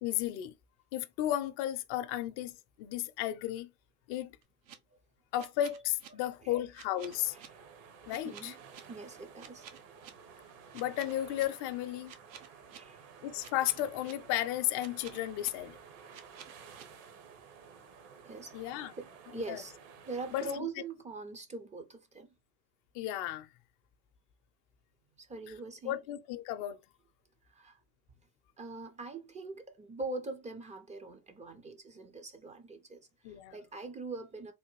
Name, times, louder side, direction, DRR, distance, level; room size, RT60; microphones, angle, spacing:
voice 1, 0.0-0.5 0.9-3.7 4.1-4.4 5.3-7.3 8.1-8.5 10.7-12.1 13.2-15.8 18.5-18.9 19.5-19.6 20.3-20.7 22.9-23.5 25.8-26.8 33.2-33.6, left 13 dB, 55° left, 0.6 m, -34 dB
sound 1, 4.4-4.7 5.4-6.1 6.7-7.5 8.1-8.8 9.4-10.1 10.7-11.4 12.1-12.8 13.4-14.1 14.8-15.5 16.1-16.8, right 8 dB, 90° right, 0.8 m, -50 dB
voice 2, 6.1-6.5 7.3-7.5 8.2-8.6 8.9-9.7 12.7-13.1 18.2-18.7 19.0-19.7 20.1-22.3 25.2-26.0 27.5-27.8 28.6-34.5, right 3 dB, 15° right, 0.4 m, -43 dB
sound 2, 7.0-20.6, right 6 dB, 60° right, 1.0 m, -53 dB
3.4 x 2.2 x 3.0 m
hypercardioid pair, 90°, 50 cm